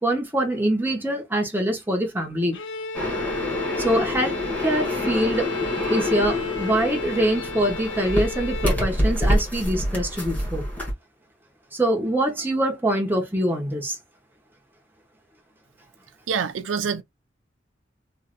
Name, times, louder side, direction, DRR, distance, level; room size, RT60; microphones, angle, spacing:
voice 1, 0.0-2.6 3.8-5.5 5.9-10.6 11.7-14.0, right 1 dB, 10° right, 0.9 m, -24 dB
Bowed string instrument, 2.5-8.9, left 3 dB, 75° left, 0.5 m, -33 dB
sound 1, 2.9-10.9, left 1 dB, 10° left, 1.4 m, -27 dB
voice 2, 16.3-17.0, right 6 dB, 85° right, 0.4 m, -26 dB
3.1 x 2.6 x 2.5 m
head